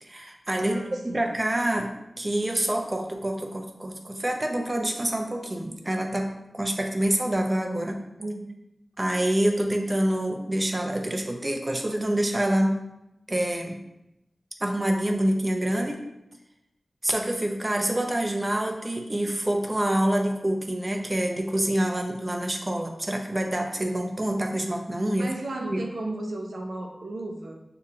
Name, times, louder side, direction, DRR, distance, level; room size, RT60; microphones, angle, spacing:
voice 1, 0.0-0.8 1.0-8.1 9.0-12.8 13.3-13.8 14.6-16.0 17.0-25.3 25.6-25.8, right 1 dB, 30° right, 2 dB, 0.6 m, -26 dB
voice 2, 0.6-1.2 8.2-8.5 25.2-27.6, right 2 dB, 80° right, 0 dB, 0.5 m, -34 dB
6.5 x 2.9 x 2.4 m, 0.88 s
cardioid pair, 45°, 0 cm